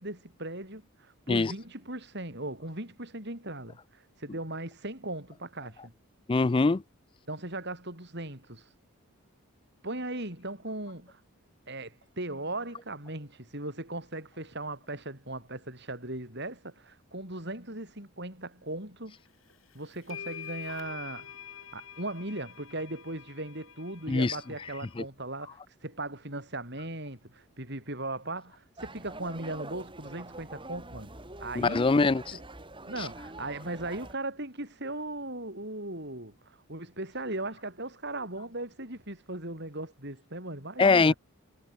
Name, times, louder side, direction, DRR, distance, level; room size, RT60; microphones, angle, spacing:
voice 1, 0.0-5.9 7.3-8.7 9.8-11.2 11.7-19.2 19.7-21.3 21.7-31.1 31.4-31.9 32.3-32.4 32.8-41.2, right 2 dB, 50° right, 7.0 m, -38 dB
voice 2, 6.3-6.8 24.1-24.4 25.0-25.1 31.6-32.4 33.0-33.1 40.8-41.1, left 3 dB, 25° left, 0.3 m, -23 dB
sound 1, 19.5-19.6 20.1-24.9, left 8 dB, 65° left, 2.9 m, -46 dB
sound 2, 28.8-34.2, right 2 dB, 20° right, 4.9 m, -45 dB
head